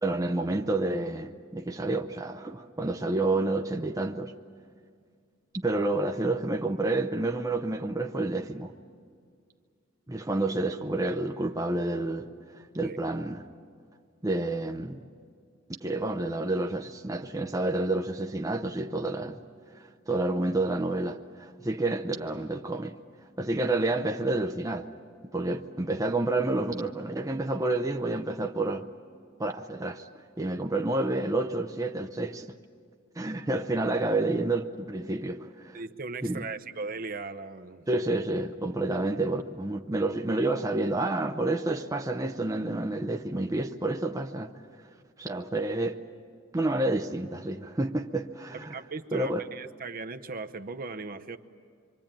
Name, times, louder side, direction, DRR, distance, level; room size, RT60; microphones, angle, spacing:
voice 1, 0.0-4.3 5.5-8.7 10.1-13.5 14.2-15.0 15.7-19.4 19.7-23.0 23.4-24.9 25.3-28.9 29.4-30.1 30.4-32.5 33.2-35.8 36.2-36.4 37.9-44.5 45.2-46.0 46.5-48.8 49.1-49.4, right 2 dB, 15° right, 0.7 m, -29 dB
voice 2, 35.7-37.9 48.5-51.4, right 4 dB, 45° right, 0.8 m, -38 dB
26.5 x 24.5 x 9.0 m
head